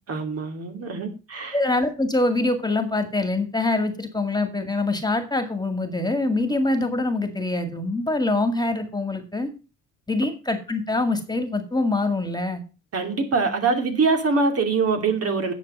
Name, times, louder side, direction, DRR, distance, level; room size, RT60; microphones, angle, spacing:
voice 1, 0.1-1.6 12.9-15.5, right 4 dB, 50° right, 5 dB, 2.7 m, -23 dB
voice 2, 1.5-9.5 10.1-12.6, left 2 dB, 15° left, 7 dB, 2.0 m, -24 dB
10.0 x 7.2 x 5.4 m, 0.32 s
cardioid pair, 90°, 30 cm